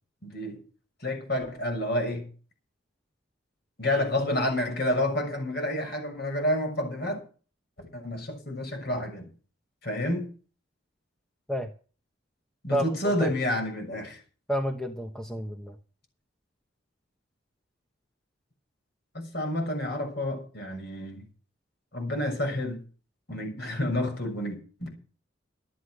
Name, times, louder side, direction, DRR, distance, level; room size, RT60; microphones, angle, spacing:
voice 1, 0.2-0.6 1.0-2.3 3.8-7.2 7.8-9.3 9.8-10.3 12.6-14.2 19.1-21.2 21.9-22.8 23.3-24.9, left 1 dB, 55° left, 6.6 m, -29 dB
voice 2, 12.7-13.3 14.5-15.7, equal, 5° left, 1.1 m, -30 dB
13.0 x 10.0 x 6.4 m
head